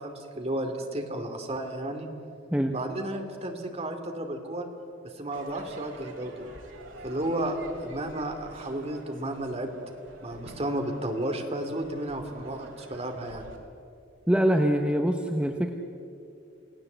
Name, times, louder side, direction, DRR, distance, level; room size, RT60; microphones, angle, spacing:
voice 1, 0.0-2.1 2.7-4.7 5.1-6.5 7.0-7.6 7.8-9.7 10.2-13.5, right 1 dB, 30° right, 4 dB, 2.6 m, -33 dB
Crowd / Fireworks, 5.3-13.6, right 1 dB, 75° right, 3.8 m, -47 dB
voice 2, 14.3-15.7, equal, 5° right, 4 dB, 1.0 m, -24 dB
29.5 x 17.5 x 8.1 m, 2.6 s
head